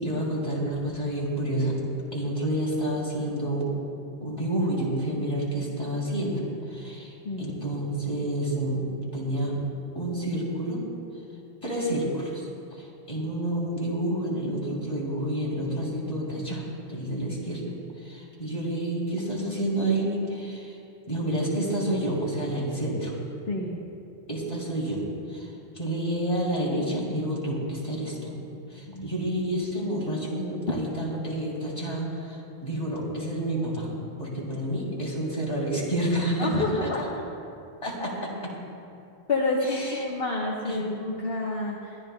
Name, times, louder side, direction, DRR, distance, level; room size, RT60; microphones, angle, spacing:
voice 1, 0.0-1.8 2.1-3.7 4.2-6.4 6.7-8.8 9.1-9.6 9.9-10.8 11.6-12.5 12.8-17.6 18.0-20.7 21.1-23.1 24.3-25.5 25.7-28.4 28.7-33.9 34.2-36.5 36.8-36.9 37.8-38.5 39.8-40.0 40.7-40.9, right 1 dB, 30° left, -5 dB, 2.9 m, -29 dB
voice 2, 7.2-7.6 23.5-23.8 28.9-29.1 36.4-37.0 39.3-42.0, left 2 dB, 65° left, -3 dB, 1.3 m, -29 dB
24.5 x 12.5 x 2.2 m, 2.6 s
omnidirectional pair, 1.1 m